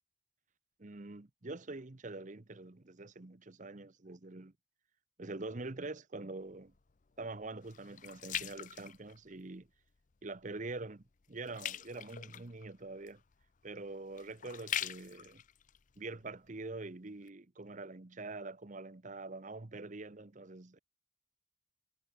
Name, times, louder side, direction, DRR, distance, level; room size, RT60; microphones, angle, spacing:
voice 1, 0.8-4.5 5.2-6.7 7.2-9.7 10.2-13.2 13.6-15.4 16.0-20.8, right 3 dB, 40° right, 0.9 m, -45 dB
sound 1, 6.4-9.7 10.1-10.5 10.8-16.7 17.2-17.3, left 10 dB, 40° left, 0.5 m, -43 dB
head